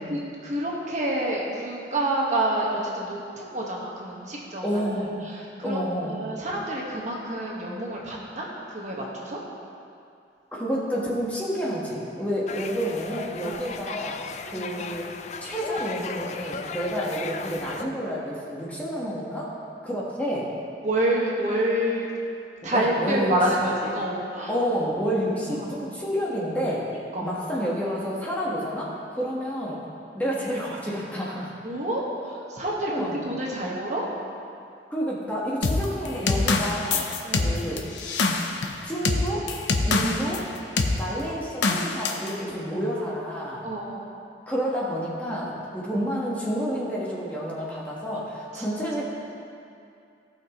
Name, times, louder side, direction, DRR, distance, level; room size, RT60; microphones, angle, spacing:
voice 1, 0.0-5.0 5.3-9.4 13.4-13.6 14.5-14.7 20.8-22.1 22.6-24.5 25.0-25.1 25.5-25.8 27.1-27.3 31.6-34.1 37.2-37.5 43.6-44.1 48.5-48.6, right 1 dB, 45° right, -4 dB, 1.4 m, -28 dB
voice 2, 4.6-5.1 5.6-6.2 10.5-15.1 15.4-19.6 19.8-20.5 22.7-23.3 24.5-26.9 27.2-29.8 30.1-31.5 32.8-33.2 34.9-37.8 38.8-39.5 39.8-40.4 40.9-43.6 44.5-49.0, equal, 10° left, -6 dB, 1.3 m, -29 dB
sound 1, 12.5-17.8, left 5 dB, 40° left, 0.4 m, -36 dB
sound 2, 35.6-40.4 40.8-41.0 41.6-42.3, left 3 dB, 90° left, 0.7 m, -24 dB
17.0 x 6.0 x 3.0 m, 2.5 s
head